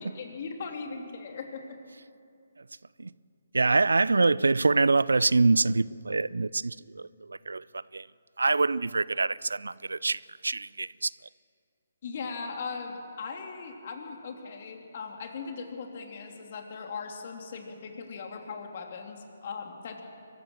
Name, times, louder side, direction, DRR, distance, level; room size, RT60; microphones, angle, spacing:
voice 1, 0.0-1.8 12.0-20.0, left 5 dB, 50° left, 3.0 m, -39 dB
voice 2, 3.5-8.1 8.4-11.1, right 3 dB, 80° right, 0.4 m, -25 dB
24.0 x 15.0 x 7.6 m
figure-of-eight pair, 140°, 0 cm